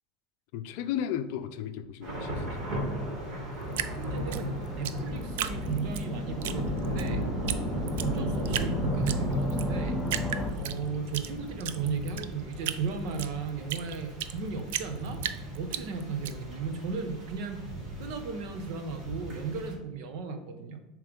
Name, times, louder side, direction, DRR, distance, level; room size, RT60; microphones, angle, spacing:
voice 1, 0.5-2.8, left 9 dB, 65° left, 10 dB, 0.5 m, -35 dB
Thunder / Rain, 2.0-19.7, right 1 dB, 40° right, 2.4 m, -36 dB
Drip, 3.7-6.0 6.4-7.1 7.5-7.6 7.9-8.7 9.1-9.7 10.1-11.3 11.6-14.4 14.7-16.3, right 11 dB, 80° right, 0.4 m, -34 dB
voice 2, 3.8-7.2 8.0-10.0 10.5-15.2 15.5-17.6 18.0-20.8, right 5 dB, 60° right, 7 dB, 1.0 m, -35 dB
sound 1, 5.1-10.5, left 2 dB, 5° left, 0.8 m, -34 dB
7.0 x 3.2 x 5.3 m, 0.97 s
supercardioid pair, 155°, 0 cm